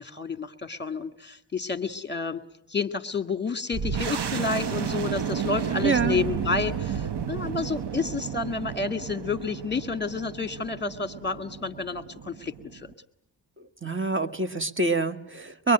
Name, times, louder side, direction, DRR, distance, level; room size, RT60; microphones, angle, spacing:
voice 1, 0.0-2.4 2.7-12.9, left 4 dB, 25° left, 9 dB, 1.9 m, -30 dB
sound 1, 3.7-12.9, right 8 dB, 70° right, 1.1 m, -32 dB
voice 2, 5.8-6.2 13.8-15.7, right 3 dB, 30° right, 9 dB, 1.8 m, -25 dB
24.5 x 22.5 x 8.9 m, 0.77 s
cardioid pair, 70°, 42 cm